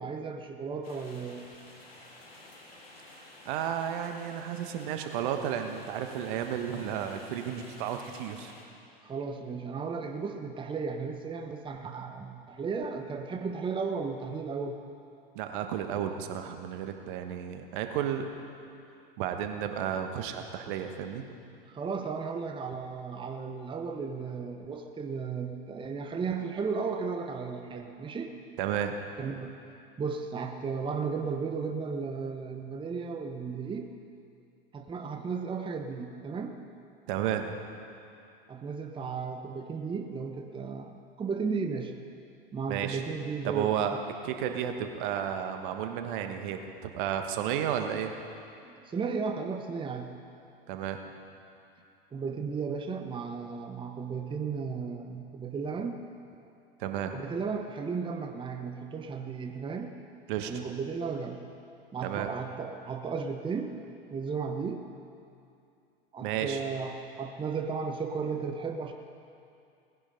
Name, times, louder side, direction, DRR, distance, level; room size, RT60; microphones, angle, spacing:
voice 1, 0.0-1.5 9.0-14.8 21.7-28.3 29.2-29.5 30.0-33.9 34.7-36.6 38.5-41.9 42.5-43.8 48.6-50.2 52.1-56.0 57.1-59.9 60.5-61.5 61.9-63.7 64.1-64.9 66.1-68.9, right 5 dB, 15° right, 5 dB, 1.0 m, -34 dB
sound 1, 0.8-8.7, left 2 dB, 90° left, 2.3 m, -52 dB
voice 2, 3.4-8.5 15.3-18.3 19.2-21.2 28.6-28.9 37.1-37.6 42.7-43.0 43.4-43.9 44.2-48.1 50.7-51.0 56.8-57.2 60.3-60.5 62.0-62.3 66.2-66.6, right 9 dB, 60° right, 6 dB, 1.4 m, -32 dB
18.5 x 10.5 x 5.3 m, 2.6 s
hypercardioid pair, 90°, 29 cm